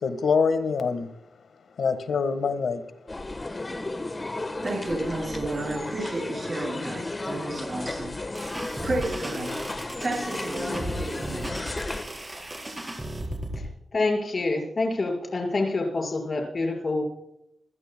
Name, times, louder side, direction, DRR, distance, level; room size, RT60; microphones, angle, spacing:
voice 1, 0.0-1.1 1.8-2.8, left 5 dB, 75° left, 10 dB, 1.5 m, -24 dB
sound 1, 3.1-12.0, left 2 dB, 25° left, 1.2 m, -34 dB
voice 2, 4.6-8.1 8.4-11.8, right 2 dB, 35° right, -4 dB, 7.8 m, -32 dB
sound 2, 8.3-13.6, right 1 dB, 20° right, 4.3 m, -35 dB
voice 3, 13.9-17.0, left 2 dB, 40° left, 0 dB, 5.2 m, -26 dB
26.0 x 16.0 x 2.3 m, 0.78 s
wide cardioid pair, 105°, 0 cm